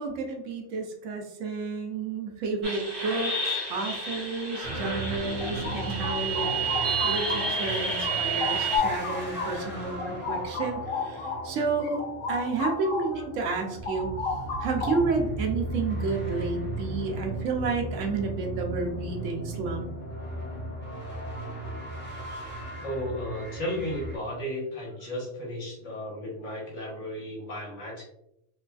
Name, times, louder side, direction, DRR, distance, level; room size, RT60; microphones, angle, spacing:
voice 1, 0.0-6.5 7.0-12.0 12.3-14.1 14.6-19.9, right 4 dB, 80° right, 3 dB, 1.0 m, -31 dB
sound 1, 2.6-8.8, right 4 dB, 60° right, 1.1 m, -30 dB
sound 2, 4.6-24.2, right 1 dB, 10° left, 0.8 m, -36 dB
sound 3, 5.4-7.7 8.0-13.2 13.5-15.3, left 4 dB, 60° left, 0.7 m, -33 dB
voice 2, 22.8-28.0, equal, 75° left, -4 dB, 1.6 m, -34 dB
3.2 x 2.4 x 2.3 m, 0.78 s
omnidirectional pair, 1.3 m